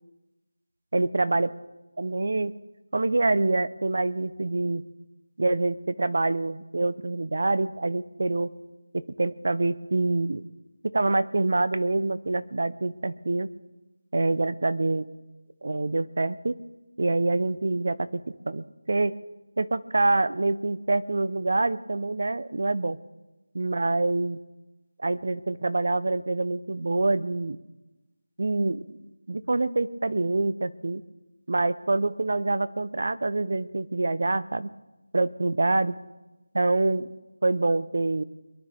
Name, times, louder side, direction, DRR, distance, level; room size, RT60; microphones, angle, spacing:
voice 1, 0.9-1.5 2.0-2.5 2.9-4.8 5.4-8.5 9.2-10.4 10.8-13.5 14.1-15.1 15.6-16.5 17.0-18.2 18.5-19.1 19.6-23.0 23.5-24.4 25.0-27.6 28.4-29.0 29.3-31.0 31.5-34.7 35.1-35.9 36.5-37.1 37.4-38.2, right 2 dB, 45° right, 15 dB, 0.6 m, -26 dB
23.5 x 12.0 x 3.5 m, 1.0 s
figure-of-eight pair, 175°, 0 cm